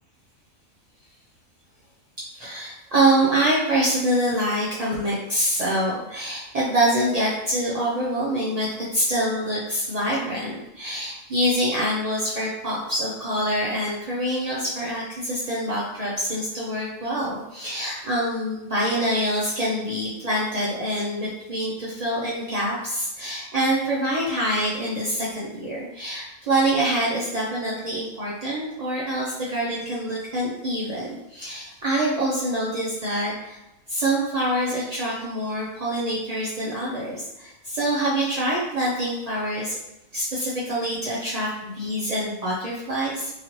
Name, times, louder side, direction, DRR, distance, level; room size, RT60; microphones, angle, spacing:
voice 1, 2.3-33.6 33.9-39.8 40.1-43.3, right 1 dB, 65° right, -6 dB, 0.3 m, -25 dB
2.9 x 2.7 x 2.9 m, 0.92 s
omnidirectional pair, 1.5 m